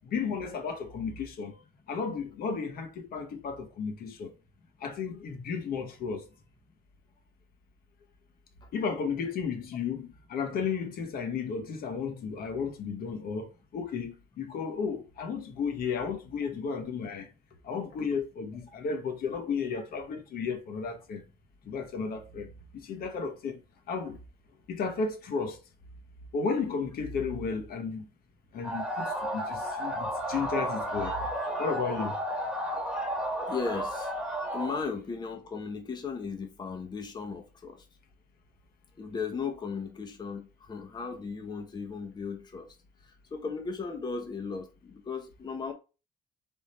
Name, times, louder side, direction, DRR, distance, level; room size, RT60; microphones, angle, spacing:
voice 1, 0.0-1.6 1.9-4.3 4.8-6.3 8.7-17.3 17.6-21.2 21.7-23.6 23.9-24.2 24.7-25.6 26.3-28.1 28.5-31.2 31.6-32.2, left 5 dB, 60° left, 1.0 m, -33 dB
sound 1, 28.6-34.8, equal, 5° right, 1.3 m, -33 dB
voice 2, 33.5-34.1 34.5-37.8 39.0-42.7 43.3-45.7, left 5 dB, 25° left, 0.7 m, -36 dB
3.6 x 2.6 x 4.2 m
cardioid pair, 110°, 17 cm